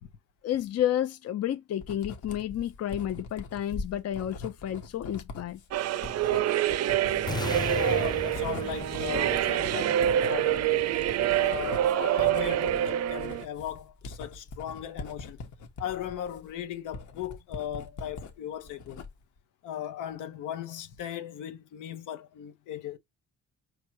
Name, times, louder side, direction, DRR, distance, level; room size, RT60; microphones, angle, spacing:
voice 1, 0.4-5.6, left 11 dB, 55° left, 0.7 m, -31 dB
Writing, 1.8-18.3 18.7-19.4, left 3 dB, 75° left, 1.4 m, -42 dB
sound 1, 5.7-13.4, right 12 dB, 60° right, 0.5 m, -26 dB
sound 2, 7.3-11.3, left 3 dB, 15° left, 0.4 m, -37 dB
voice 2, 7.7-11.0 11.4-15.4 15.8-19.0 19.6-23.0, left 10 dB, 90° left, 1.1 m, -37 dB
5.0 x 3.3 x 3.0 m
cardioid pair, 90°, 30 cm